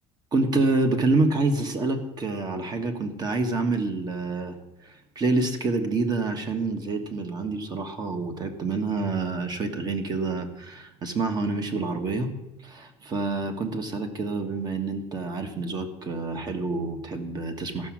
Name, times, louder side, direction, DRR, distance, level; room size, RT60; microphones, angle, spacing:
voice 1, 0.3-4.6 4.8-12.3 12.6-17.9, right 3 dB, 30° right, 7 dB, 1.3 m, -27 dB
13.5 x 6.1 x 7.4 m, 0.98 s
cardioid pair, 140°, 14 cm